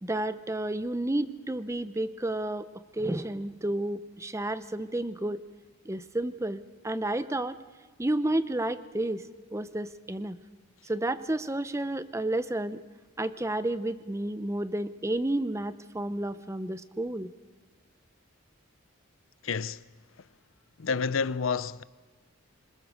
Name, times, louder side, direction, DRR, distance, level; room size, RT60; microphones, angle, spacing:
voice 1, 0.0-5.4 5.8-7.6 8.0-10.4 10.8-12.8 13.2-17.3, right 1 dB, 15° right, 0.7 m, -31 dB
voice 2, 19.4-19.8 20.8-21.8, left 5 dB, 75° left, 0.6 m, -29 dB
26.0 x 21.0 x 6.3 m
head